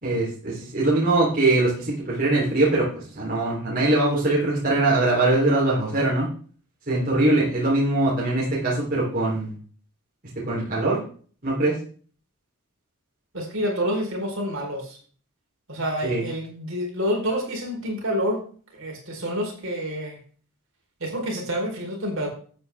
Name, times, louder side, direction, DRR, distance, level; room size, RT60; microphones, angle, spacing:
voice 1, 0.0-2.9 3.1-6.3 6.9-9.5 10.5-11.0 11.4-11.7 16.0-16.2, right 2 dB, 40° right, -5 dB, 3.6 m, -22 dB
voice 2, 13.3-15.0 15.7-18.4 18.7-20.2 21.0-22.3, equal, 60° right, -1 dB, 4.4 m, -28 dB
13.0 x 8.5 x 3.6 m, 0.43 s
head